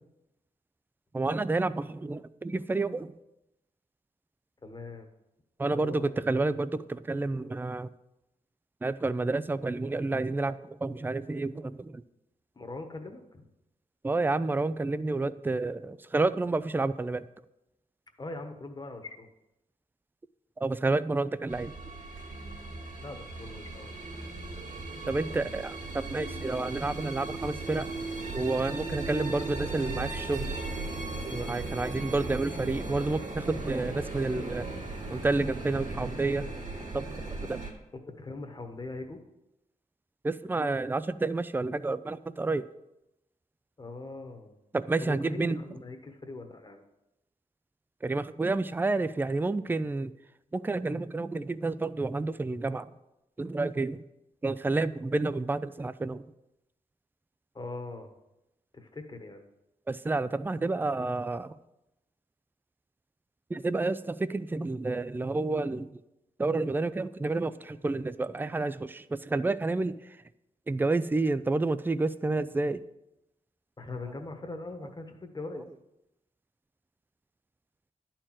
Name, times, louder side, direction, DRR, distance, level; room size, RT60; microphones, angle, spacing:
voice 1, 1.1-3.1 5.6-7.9 8.8-12.0 14.0-17.3 20.6-21.7 25.1-27.9 28.3-30.6 31.3-34.7 35.1-36.4 36.9-37.6 40.2-42.6 44.7-45.6 48.0-50.1 50.5-52.9 53.4-54.0 54.4-56.2 59.9-61.5 63.5-65.9 66.4-70.0 70.7-72.8, right 3 dB, 15° right, 15 dB, 0.4 m, -30 dB
voice 2, 4.6-5.1 5.7-6.1 12.5-13.4 18.2-19.3 23.0-23.9 25.0-25.5 37.9-39.2 43.8-44.6 45.0-46.8 57.5-58.1 58.7-59.4 73.8-75.6, left 2 dB, 30° left, 5 dB, 1.3 m, -41 dB
sound 1, 21.5-37.7, right 2 dB, 65° right, 2.1 m, -37 dB
11.0 x 4.5 x 7.5 m, 0.91 s
wide cardioid pair, 100°, 14 cm